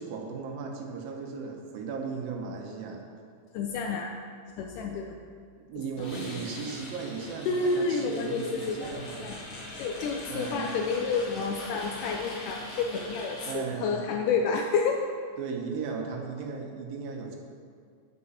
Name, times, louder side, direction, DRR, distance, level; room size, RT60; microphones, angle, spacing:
voice 1, 0.0-3.0 5.6-9.3 10.3-10.8 13.5-14.0 15.4-17.4, right 5 dB, 80° right, 2 dB, 2.7 m, -36 dB
voice 2, 3.5-4.1 4.6-5.2 6.0-6.1 7.5-9.4 9.7-15.1, left 4 dB, 80° left, 3 dB, 1.9 m, -29 dB
sound 1, 6.0-13.5, left 2 dB, 50° left, 1.6 m, -42 dB
8.6 x 6.1 x 5.6 m, 2.1 s
omnidirectional pair, 4.1 m